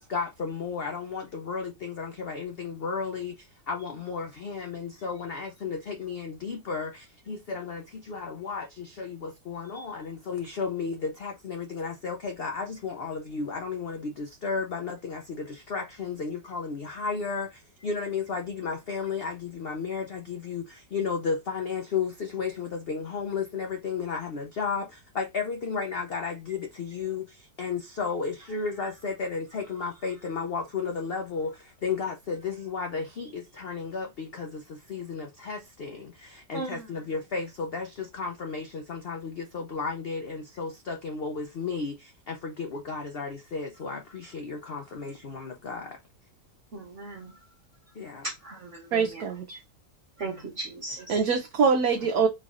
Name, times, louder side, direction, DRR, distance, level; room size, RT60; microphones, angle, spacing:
voice 1, 0.0-46.0 47.9-48.3 50.3-50.4, left 5 dB, 80° left, 0.5 m, -33 dB
voice 2, 36.5-36.9 46.7-47.3 48.2-49.6 50.2-51.2, right 3 dB, 50° right, 1.3 m, -38 dB
voice 3, 48.9-49.6 51.1-52.3, right 5 dB, 65° right, 1.1 m, -24 dB
3.8 x 3.1 x 2.4 m
omnidirectional pair, 1.8 m